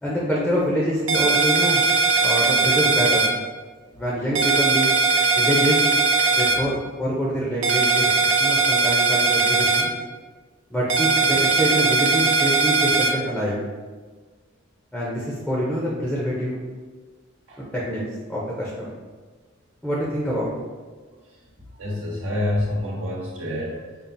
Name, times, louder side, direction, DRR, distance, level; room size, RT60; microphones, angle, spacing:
voice 1, 0.0-1.8 2.2-3.3 4.0-4.9 5.4-5.9 6.3-9.9 10.7-13.6 14.9-16.6 17.6-18.0 18.3-18.9 19.8-20.5, equal, 5° left, -5 dB, 0.5 m, -25 dB
sound 1, 1.1-3.3 4.4-6.6 7.6-9.8 10.9-13.1, right 4 dB, 70° right, 0.5 m, -19 dB
voice 2, 21.1-21.4 21.7-24.0, left 1 dB, 85° right, -5 dB, 1.1 m, -28 dB
5.2 x 2.4 x 2.5 m, 1.4 s
head